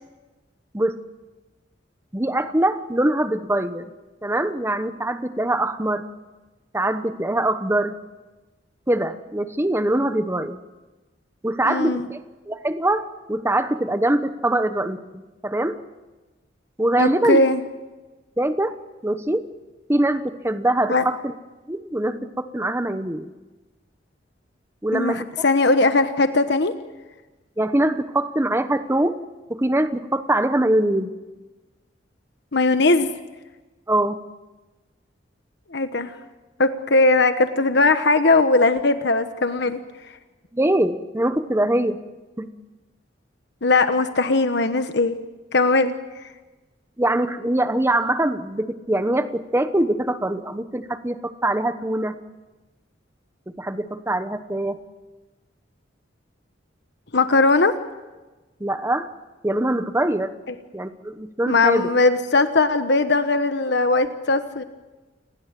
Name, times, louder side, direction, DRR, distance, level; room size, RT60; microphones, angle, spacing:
voice 1, 2.1-3.8 4.2-6.1 6.7-7.9 8.9-10.6 11.4-12.2 12.5-15.0 15.4-15.8 16.8-17.4 18.4-18.7 19.0-19.5 19.9-21.3 21.7-23.3 24.8-25.5 27.6-29.2 29.5-31.1 33.9-34.2 40.5-42.0 42.4-42.5 47.0-52.2 53.5-54.8 58.6-59.1 59.4-60.3 60.7-61.9, right 1 dB, 15° right, 10 dB, 1.0 m, -23 dB
voice 2, 11.7-12.1 17.0-17.6 20.9-21.0 24.9-26.7 32.5-33.1 35.7-36.1 36.6-39.8 43.6-45.2 45.5-45.9 57.1-57.7 61.5-64.6, left 3 dB, 65° left, 9 dB, 1.2 m, -19 dB
29.5 x 20.5 x 7.6 m, 1.2 s
head